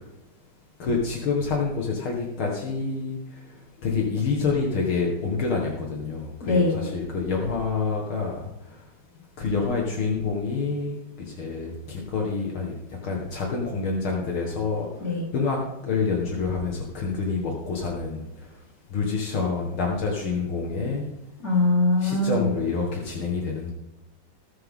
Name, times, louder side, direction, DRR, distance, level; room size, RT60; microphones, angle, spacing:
voice 1, 0.8-3.2 3.8-8.3 9.4-12.7 13.0-14.9 15.3-15.6 15.8-18.2 18.9-21.1 22.0-23.7, left 4 dB, 75° left, -1 dB, 2.5 m, -27 dB
voice 2, 6.4-6.8 15.0-15.3 21.4-22.5, left 2 dB, 40° left, -4 dB, 4.4 m, -22 dB
20.0 x 7.8 x 3.7 m, 0.95 s
omnidirectional pair, 2.3 m